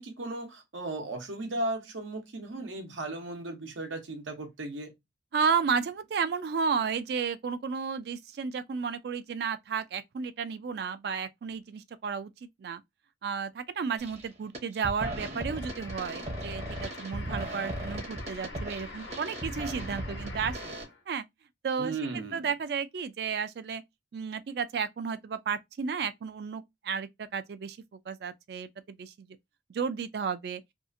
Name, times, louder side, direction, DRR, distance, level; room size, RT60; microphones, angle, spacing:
voice 1, 0.0-4.9 21.8-22.5, right 2 dB, 85° right, 0.8 m, -36 dB
voice 2, 5.3-12.8 13.2-20.7 21.1-21.2 21.6-23.8 24.1-27.8 28.1-29.3 29.7-30.6, right 6 dB, 55° right, 0.3 m, -33 dB
sound 1, 14.0-14.2 14.5-20.8, right 1 dB, 35° right, 0.7 m, -37 dB
sound 2, 15.5-21.0, left 3 dB, 75° left, 1.1 m, -45 dB
2.7 x 2.4 x 2.5 m
head